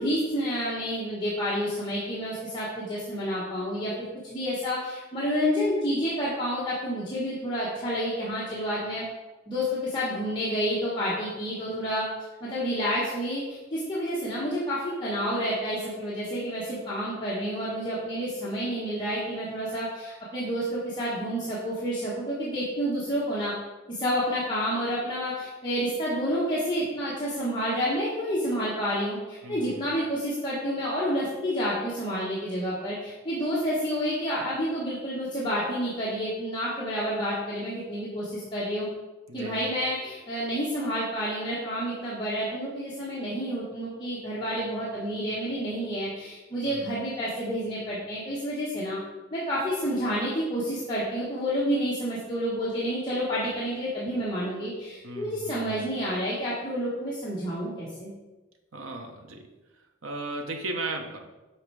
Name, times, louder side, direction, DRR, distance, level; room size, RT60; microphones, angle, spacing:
voice 1, 0.0-9.0 9.5-12.0 12.4-23.5 23.9-38.9 39.3-49.0 49.3-58.1, equal, 20° left, -8 dB, 1.3 m, -29 dB
voice 2, 29.4-29.9 39.3-39.7 46.6-46.9 55.0-55.8 58.7-59.5 60.0-61.2, right 2 dB, 85° right, 3 dB, 1.0 m, -36 dB
7.1 x 4.5 x 4.7 m, 1.2 s
head